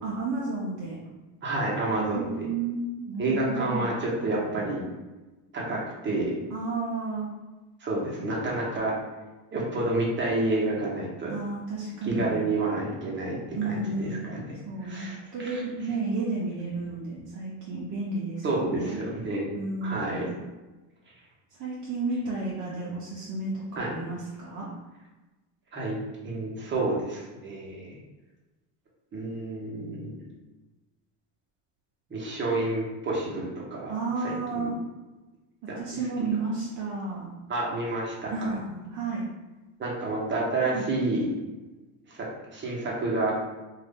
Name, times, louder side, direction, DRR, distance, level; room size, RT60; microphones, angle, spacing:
voice 1, 0.0-1.0 2.0-3.9 6.5-7.3 11.3-12.5 13.6-14.2 14.6-15.0 15.3-19.0 19.5-20.4 21.5-24.7 33.9-34.7 35.8-37.3 38.3-39.2 40.6-40.9, right 3 dB, 45° right, -6 dB, 0.7 m, -32 dB
voice 2, 1.4-2.5 3.2-4.9 5.5-6.4 7.8-8.9 9.5-11.3 12.0-14.5 14.8-15.6 18.4-19.5 19.8-20.2 23.8-23.9 25.7-26.0 26.2-28.0 29.1-30.2 32.1-33.9 34.2-34.7 35.7-35.8 37.5-38.3 39.8-41.3 42.1-42.2 42.5-43.4, right 2 dB, 25° right, -4 dB, 1.0 m, -29 dB
2.7 x 2.5 x 3.5 m, 1.1 s
supercardioid pair, 100°, 44 cm